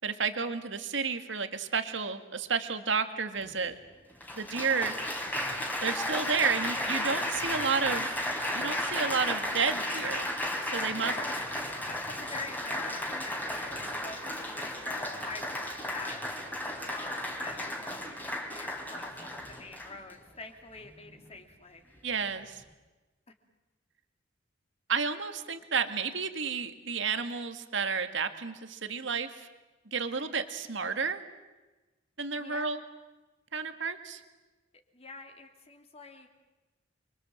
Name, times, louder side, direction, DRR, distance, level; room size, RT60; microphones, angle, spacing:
voice 1, 0.0-3.7 4.4-5.0 5.8-8.2 8.5-10.3 10.6-11.1 22.0-22.6 24.9-29.5 29.9-31.2 32.2-32.8 33.5-34.2, right 5 dB, 70° right, 8 dB, 2.0 m, -31 dB
Applause, 3.4-3.5 4.2-20.1 20.8-21.2, left 1 dB, 10° left, 3.5 m, -34 dB
voice 2, 10.9-11.4 11.9-16.2 16.5-21.9 32.4-32.7 34.9-36.3, left 3 dB, 35° left, 4 dB, 3.0 m, -45 dB
29.5 x 23.5 x 7.8 m, 1.1 s
head